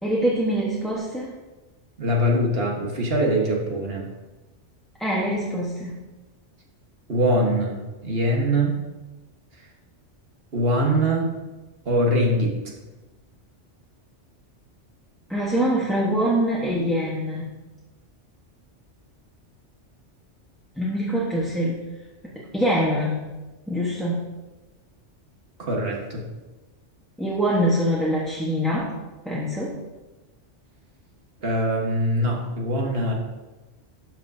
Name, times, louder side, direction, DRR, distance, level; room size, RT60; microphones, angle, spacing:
voice 1, 0.0-1.3 5.0-6.0 15.3-17.6 20.8-21.8 22.5-23.2 23.7-24.2 27.2-28.9 29.2-29.7, equal, ahead, -6 dB, 1.0 m, -24 dB
voice 2, 2.0-4.1 7.1-8.8 10.5-11.3 11.8-12.5 25.6-26.2 31.4-33.1, equal, 55° right, -1 dB, 1.6 m, -23 dB
12.0 x 6.0 x 2.7 m, 1.2 s
omnidirectional pair, 1.2 m